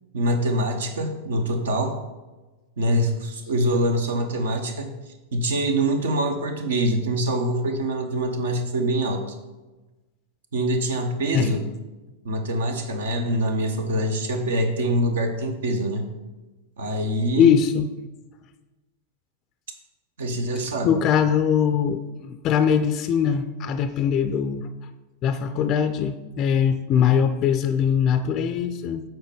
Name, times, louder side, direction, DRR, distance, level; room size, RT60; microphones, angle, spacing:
voice 1, 0.1-2.0 2.8-4.9 5.3-9.3 10.5-11.6 12.2-16.0 16.8-17.5 20.2-21.0, right 1 dB, 60° right, 6 dB, 0.9 m, -24 dB
voice 2, 17.4-17.9 20.8-24.7 25.2-29.0, left 8 dB, 35° left, 10 dB, 0.4 m, -21 dB
7.7 x 4.5 x 5.2 m, 1.2 s
figure-of-eight pair, 90°, 0 cm